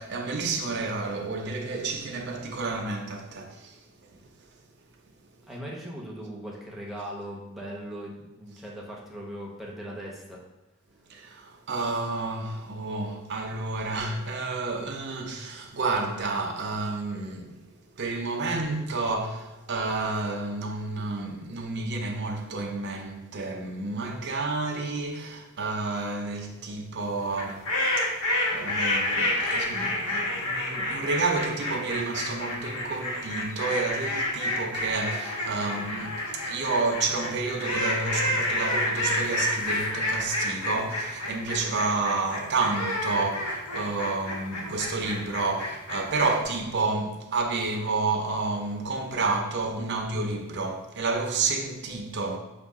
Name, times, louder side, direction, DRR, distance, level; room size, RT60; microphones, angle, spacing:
voice 1, 0.0-4.2 11.1-17.6 18.0-27.7 28.0-52.4, right 3 dB, 55° right, 0.6 m, -30 dB
voice 2, 5.5-10.4, equal, ahead, 0.7 m, -39 dB
sound 1, 27.3-46.4, left 1 dB, 85° left, 1.1 m, -29 dB
5.4 x 2.3 x 3.5 m
head